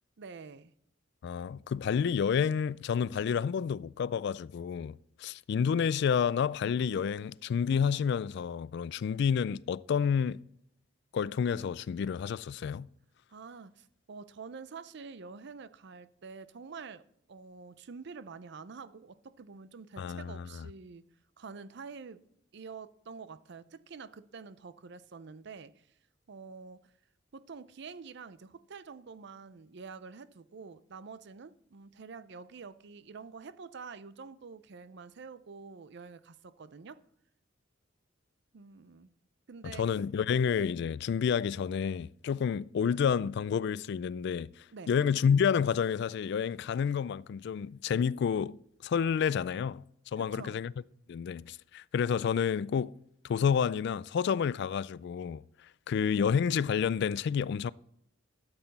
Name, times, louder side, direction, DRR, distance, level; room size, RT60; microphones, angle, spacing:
voice 1, 0.2-0.7 13.3-21.1 21.4-22.2 22.5-25.9 26.3-26.9 27.3-37.0 38.5-39.1 39.5-39.9 44.7-44.9 50.2-50.6, right 5 dB, 65° right, 0.5 m, -47 dB
voice 2, 1.2-10.4 11.1-12.9 20.0-20.5 39.8-44.5 44.9-48.6 48.8-49.8 50.1-50.7 51.1-52.9 53.2-55.4 55.9-57.7, left 7 dB, 60° left, 0.3 m, -29 dB
12.5 x 7.9 x 4.1 m
head